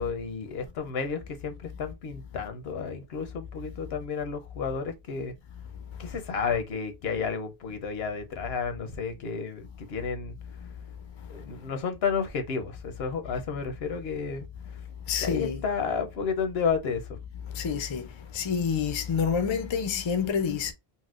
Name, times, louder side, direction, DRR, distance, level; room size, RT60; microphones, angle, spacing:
voice 1, 0.0-5.3 6.0-10.3 11.3-14.5 15.2-17.2, left 5 dB, 80° left, 0.9 m, -31 dB
voice 2, 15.1-15.6 17.5-18.0 18.3-20.7, left 6 dB, 40° left, 0.4 m, -28 dB
4.1 x 2.1 x 2.4 m
omnidirectional pair, 1.1 m